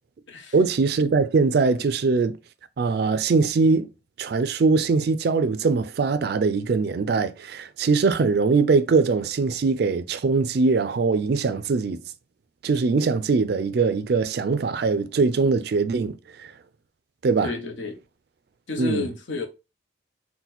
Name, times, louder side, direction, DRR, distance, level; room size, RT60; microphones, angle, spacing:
voice 1, 0.5-2.3 2.8-3.9 4.2-12.0 12.6-16.2 16.4-16.5 17.2-17.5 18.8-19.1, right 4 dB, 55° right, 0.3 m, -22 dB
voice 2, 17.4-18.0 18.7-19.5, left 3 dB, 80° left, 0.9 m, -30 dB
4.0 x 2.1 x 4.3 m
head